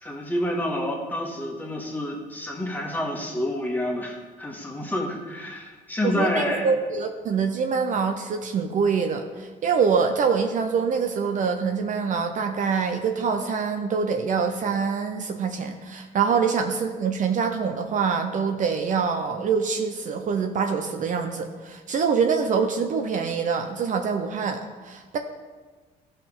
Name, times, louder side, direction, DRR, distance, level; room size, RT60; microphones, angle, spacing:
voice 1, 0.0-6.7 16.3-16.4, left 1 dB, 10° left, -2 dB, 1.8 m, -28 dB
voice 2, 6.0-25.2, right 5 dB, 50° right, 5 dB, 0.7 m, -25 dB
14.0 x 5.7 x 3.6 m, 1.4 s
cardioid pair, 110°, 17 cm